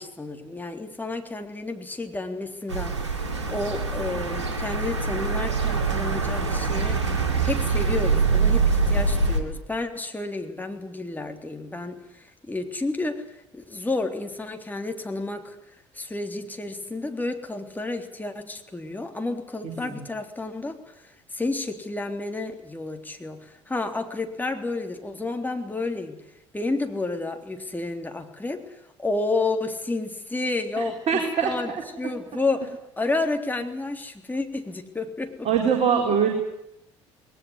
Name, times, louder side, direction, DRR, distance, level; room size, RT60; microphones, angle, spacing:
voice 1, 0.0-7.0 7.4-12.0 12.5-13.3 13.5-15.6 16.0-20.8 21.3-26.2 26.5-28.6 29.0-31.7 32.0-35.5, left 2 dB, 10° left, 4 dB, 3.5 m, -30 dB
sound 1, 2.7-9.4, right 4 dB, 80° right, 2.5 m, -24 dB
voice 2, 30.8-31.5 35.4-36.3, right 7 dB, 50° right, 2 dB, 4.5 m, -22 dB
21.0 x 19.5 x 9.8 m, 0.84 s
figure-of-eight pair, 55°, 15 cm